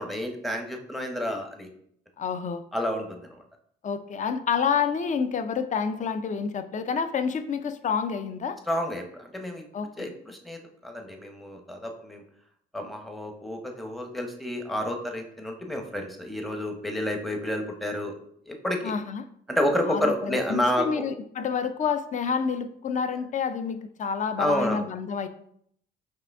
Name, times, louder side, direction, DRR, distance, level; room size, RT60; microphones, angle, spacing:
voice 1, 0.0-1.7 2.7-3.4 8.7-9.6 10.0-12.2 12.7-18.2 18.5-18.9 19.5-20.9 24.4-24.8, left 1 dB, ahead, 3 dB, 0.7 m, -29 dB
voice 2, 2.2-2.6 3.8-8.6 9.7-10.1 18.8-19.3 19.9-25.3, left 6 dB, 40° left, 11 dB, 0.4 m, -28 dB
4.9 x 2.7 x 3.4 m, 0.67 s
cardioid pair, 90°, 20 cm